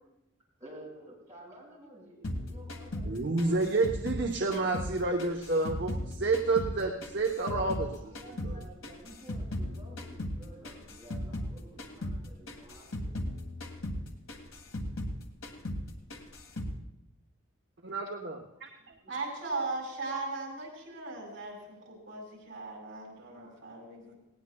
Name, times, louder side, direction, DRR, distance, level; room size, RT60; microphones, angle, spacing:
voice 1, 0.6-3.6 7.8-13.1 18.8-18.9 23.3-23.5, right 1 dB, 15° right, -5 dB, 5.7 m, -52 dB
sound 1, 2.2-4.9 5.2-7.9 8.2-11.5 11.8-12.2 12.5-15.2 15.4-16.8, left 1 dB, 85° left, 1.8 m, -37 dB
voice 2, 3.0-8.6 17.8-18.9, right 3 dB, 55° right, 1 dB, 0.9 m, -30 dB
voice 3, 19.1-24.2, right 3 dB, 70° right, -1 dB, 4.7 m, -38 dB
19.0 x 17.5 x 2.3 m, 0.90 s
head